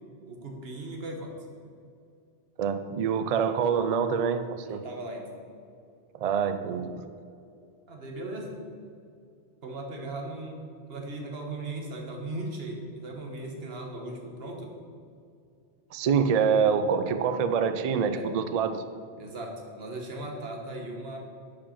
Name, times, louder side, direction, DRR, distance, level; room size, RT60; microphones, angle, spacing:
voice 1, 0.2-1.3 4.6-5.3 7.9-8.6 9.6-10.6 10.9-14.7 18.1-18.3 19.2-21.2, right 2 dB, 55° right, 1 dB, 1.4 m, -38 dB
voice 2, 2.6-4.8 6.1-7.0 15.9-18.8, right 6 dB, 75° right, 10 dB, 0.3 m, -26 dB
11.0 x 5.2 x 4.3 m, 2.4 s
omnidirectional pair, 1.2 m